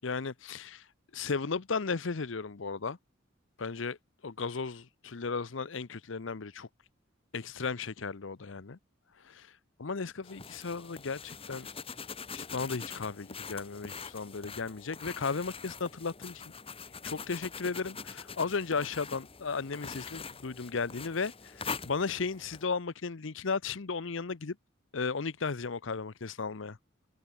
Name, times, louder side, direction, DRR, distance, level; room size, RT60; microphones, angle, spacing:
voice 1, 0.0-0.8 1.1-3.0 3.6-4.0 4.2-6.7 7.3-8.8 9.3-9.5 9.8-11.7 12.3-16.4 17.0-21.3 21.6-24.6 24.9-26.8, left 4 dB, 70° left, 0.8 m, -35 dB
sound 1, 10.2-22.6, left 5 dB, 30° left, 1.8 m, -44 dB
open air
head